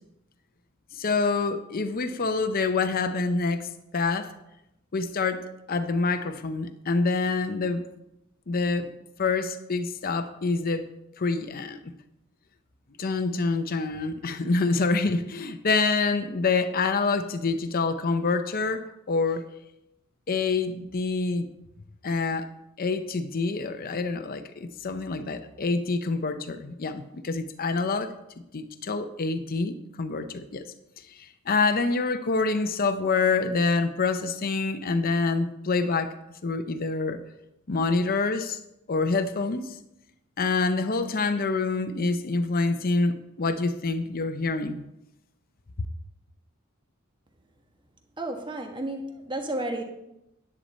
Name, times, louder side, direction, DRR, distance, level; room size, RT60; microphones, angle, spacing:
voice 1, 0.9-4.3 4.9-7.8 8.5-8.9 9.2-10.9 11.2-11.8 13.0-19.5 20.3-21.5 22.0-22.5 22.8-28.1 28.5-30.6 31.1-36.1 36.4-37.2 37.7-38.6 38.9-39.8 40.4-44.9 45.8-45.9, left 3 dB, 45° left, 9 dB, 0.6 m, -26 dB
voice 2, 48.2-49.8, right 1 dB, 25° right, 3 dB, 1.4 m, -32 dB
10.0 x 8.7 x 4.2 m, 0.87 s
head